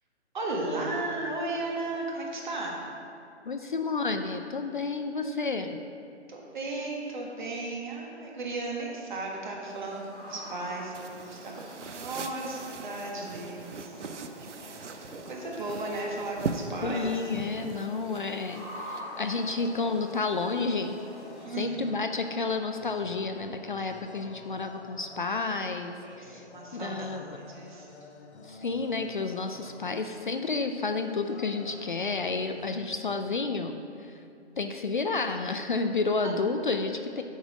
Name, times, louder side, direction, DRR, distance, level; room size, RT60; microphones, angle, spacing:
voice 1, 0.3-2.8 6.3-14.0 14.4-14.9 15.2-17.1 21.4-21.8 25.9-27.2 27.5-27.9 36.2-36.3, right 2 dB, 45° right, -1 dB, 1.5 m, -35 dB
voice 2, 3.4-5.8 16.8-21.0 21.6-26.4 26.7-27.4 28.4-34.2 34.6-37.2, left 4 dB, 45° left, 6 dB, 0.4 m, -31 dB
sound 1, 9.6-21.4, left 1 dB, ahead, 2.1 m, -46 dB
sound 2, 10.9-19.0, right 4 dB, 90° right, 0.7 m, -40 dB
sound 3, 19.3-33.2, left 3 dB, 70° left, 1.0 m, -50 dB
7.4 x 5.5 x 6.0 m, 2.5 s
hypercardioid pair, 160°, 35 cm